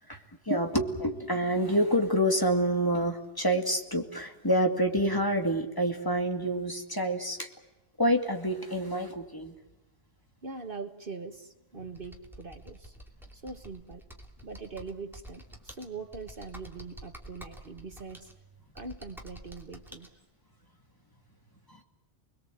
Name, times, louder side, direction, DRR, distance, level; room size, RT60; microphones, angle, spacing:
voice 1, 0.1-7.5 8.0-9.5 21.7-21.8, equal, 20° left, 3 dB, 2.3 m, -27 dB
voice 2, 10.4-12.9 13.3-14.1 14.4-18.3 18.7-20.2, right 4 dB, 50° right, 7 dB, 1.5 m, -42 dB
Computer keyboard, 11.9-20.1, right 1 dB, ahead, 2.9 m, -49 dB
29.5 x 21.5 x 7.8 m, 0.99 s
omnidirectional pair, 1.2 m